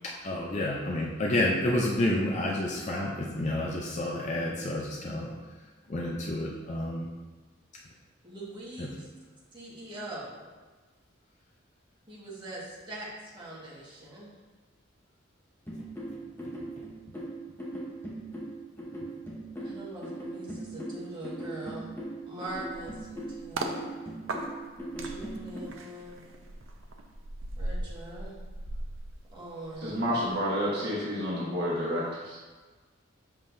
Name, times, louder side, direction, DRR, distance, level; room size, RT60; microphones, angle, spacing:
voice 1, 0.0-5.3 5.9-7.1 8.8-8.9, left 1 dB, 35° left, -2 dB, 0.5 m, -29 dB
voice 2, 8.2-9.1 9.5-10.4 12.1-14.4 19.6-21.9 22.3-23.9 25.0-26.2 27.6-28.4 29.3-30.2, right 1 dB, 25° right, -7 dB, 1.6 m, -42 dB
sound 1, 15.7-25.6, right 1 dB, 10° left, 0.9 m, -39 dB
sound 2, 22.5-23.8 24.3-29.9 30.2-30.4, right 2 dB, 80° right, 0.6 m, -38 dB
voice 3, 29.8-32.4, equal, 55° right, -7 dB, 1.4 m, -30 dB
6.7 x 5.6 x 2.6 m, 1.3 s
head